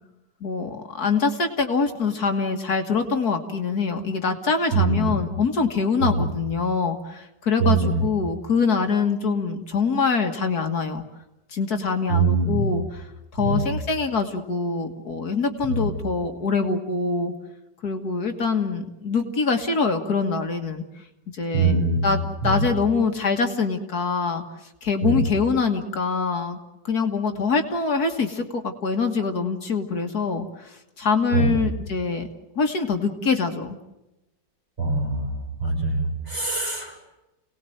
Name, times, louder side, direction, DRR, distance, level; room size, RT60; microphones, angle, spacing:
voice 1, 0.4-11.0 11.5-13.1 13.3-17.3 17.8-20.8 21.3-24.4 24.8-26.6 26.8-32.3 32.6-33.8, left 4 dB, 60° left, 5 dB, 2.2 m, -24 dB
voice 2, 4.7-5.1 6.0-6.2 7.6-8.0 12.1-12.7 13.4-13.7 15.7-15.8 21.5-22.1 22.4-22.6 25.0-25.2 31.3-31.5 34.8-35.3 35.6-37.1, right 4 dB, 35° right, 1 dB, 6.4 m, -23 dB
28.5 x 19.0 x 7.9 m, 0.97 s
omnidirectional pair, 1.9 m